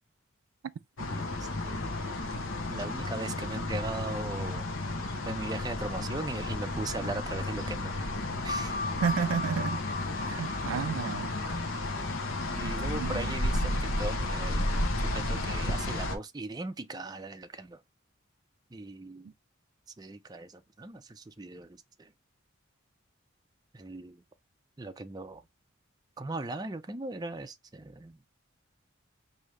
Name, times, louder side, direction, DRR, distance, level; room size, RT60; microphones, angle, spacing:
sound 1, 1.0-16.2, left 2 dB, 75° left, 0.9 m, -32 dB
voice 1, 1.1-1.9 2.7-4.7 5.2-8.1 8.4-8.8 11.4-11.6 12.6-17.8 18.7-19.3 20.0-22.1 23.7-24.2 24.8-25.4 26.2-28.2, right 2 dB, 20° right, 0.4 m, -39 dB
sound 2, 8.5-13.7, left 3 dB, 40° left, 0.4 m, -39 dB
voice 2, 9.0-9.8 10.2-11.3 12.6-13.3, right 6 dB, 85° right, 0.4 m, -32 dB
4.9 x 2.7 x 3.1 m
head